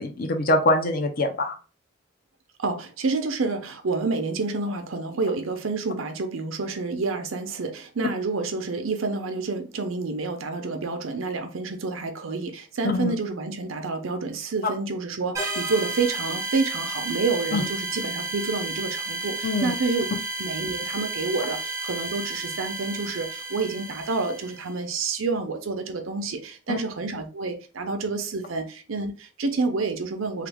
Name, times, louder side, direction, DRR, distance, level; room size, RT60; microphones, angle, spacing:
voice 1, 0.0-1.6 12.8-13.1 17.5-17.6 19.4-19.7 26.7-26.8, left 2 dB, 50° left, 0.6 m, -24 dB
voice 2, 2.6-20.0 20.4-30.5, right 3 dB, 85° right, 0.7 m, -28 dB
sound 1, 15.3-24.7, right 2 dB, 15° right, 0.6 m, -32 dB
3.2 x 2.3 x 3.4 m
head